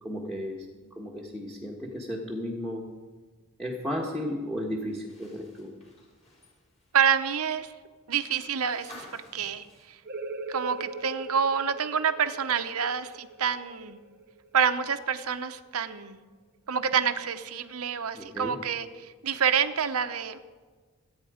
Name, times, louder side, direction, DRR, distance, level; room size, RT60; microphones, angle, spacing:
voice 1, 0.0-0.7 0.9-2.8 3.6-5.7 18.1-18.6, equal, 5° left, -3 dB, 1.5 m, -34 dB
sound 1, 4.9-11.0 11.3-11.4 12.8-12.9, left 2 dB, 30° left, 5.3 m, -53 dB
voice 2, 6.9-7.7 8.1-10.0 10.5-14.0 14.5-16.2 16.7-20.4, right 7 dB, 75° right, 9 dB, 0.8 m, -28 dB
sound 2, 10.0-15.4, right 3 dB, 45° right, 0.9 m, -41 dB
24.5 x 9.0 x 5.0 m, 1.4 s
head